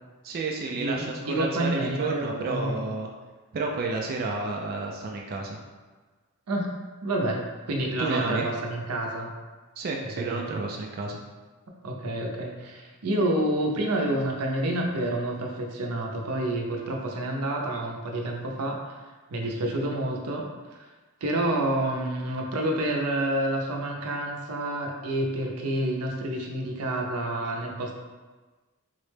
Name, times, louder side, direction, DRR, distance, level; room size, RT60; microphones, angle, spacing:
voice 1, 0.2-3.1 3.5-5.6 8.0-8.5 9.8-11.2 19.4-19.7, right 3 dB, 45° right, -1 dB, 0.3 m, -31 dB
voice 2, 0.7-2.8 6.5-6.7 7.0-9.3 10.2-10.6 11.8-18.9 19.3-20.9 21.2-27.9, right 1 dB, 90° right, 1 dB, 0.5 m, -29 dB
3.7 x 2.1 x 3.2 m, 1.3 s
head